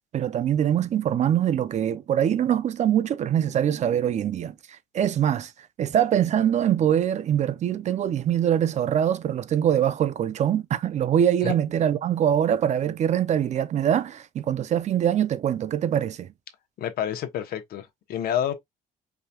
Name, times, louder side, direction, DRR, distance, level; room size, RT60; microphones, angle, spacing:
voice 1, 0.1-16.3, right 10 dB, 45° right, 0.4 m, -23 dB
voice 2, 16.8-18.5, left 10 dB, 65° left, 1.0 m, -28 dB
4.8 x 2.8 x 2.3 m
cardioid pair, 110°, 17 cm